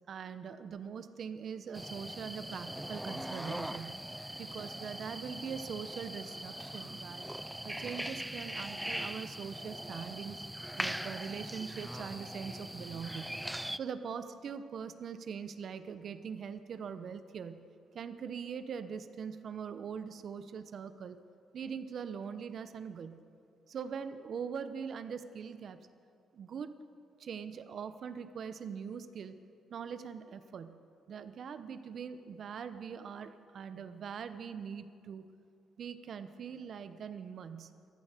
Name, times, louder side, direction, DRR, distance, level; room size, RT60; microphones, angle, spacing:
voice 1, 0.1-3.9 4.4-7.2 7.6-10.4 10.8-13.3 13.7-17.6 17.9-21.2 21.5-23.2 23.7-25.8 26.3-26.7 27.2-29.3 29.7-30.7 31.1-35.2 35.8-37.7, right 7 dB, 60° right, 11 dB, 0.9 m, -42 dB
sound 1, 1.7-13.8, right 1 dB, 5° right, 0.4 m, -41 dB
13.5 x 13.5 x 6.7 m, 2.4 s
cardioid pair, 90°, 0 cm